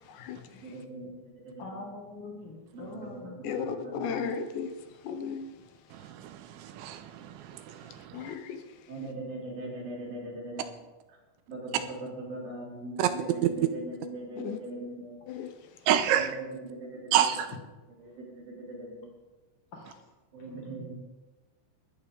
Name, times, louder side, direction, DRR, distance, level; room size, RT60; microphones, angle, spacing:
voice 1, 0.6-1.6 2.7-4.3 8.9-10.8 11.1-11.2 11.5-15.2 16.1-17.3 18.0-19.1 20.3-20.9, right 1 dB, 50° right, -3 dB, 5.4 m, -40 dB
voice 2, 1.6-3.4 19.7-20.1 20.4-20.9, left 2 dB, 45° left, -1 dB, 1.8 m, -44 dB
voice 3, 3.4-4.7 5.0-5.5 8.1-8.6 14.4-14.6 15.3-15.5, left 7 dB, 75° left, 8 dB, 3.0 m, -34 dB
voice 4, 6.1-7.9 13.0-13.1 15.9-16.3 17.1-17.5, right 10 dB, 80° right, 9 dB, 2.9 m, -27 dB
21.5 x 12.5 x 3.7 m, 1.1 s
omnidirectional pair, 5.6 m